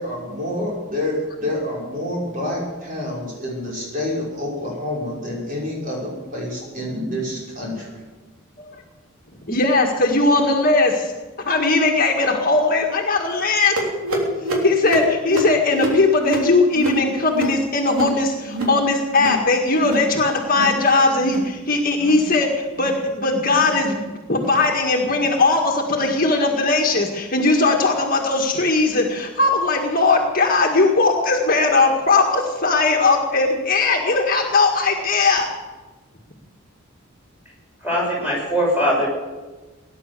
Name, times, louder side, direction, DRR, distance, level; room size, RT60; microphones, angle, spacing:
voice 1, 0.0-8.0, left 1 dB, 40° right, -4 dB, 5.9 m, -28 dB
voice 2, 9.5-11.1 11.5-13.8 14.6-24.0 24.3-35.5, left 3 dB, 40° left, 1 dB, 1.8 m, -19 dB
sound 1, 13.8-18.8 19.1-19.4 19.7-20.1 20.4-20.8 21.2-21.5 21.9-22.2 22.7-23.0 23.5-23.8 24.3-24.5 25.2-25.3 26.0-26.1 26.9-27.0, equal, 85° right, 3.3 m, -26 dB
voice 3, 37.8-39.1, equal, 10° right, -4 dB, 6.9 m, -21 dB
18.5 x 10.5 x 6.9 m, 1.2 s
head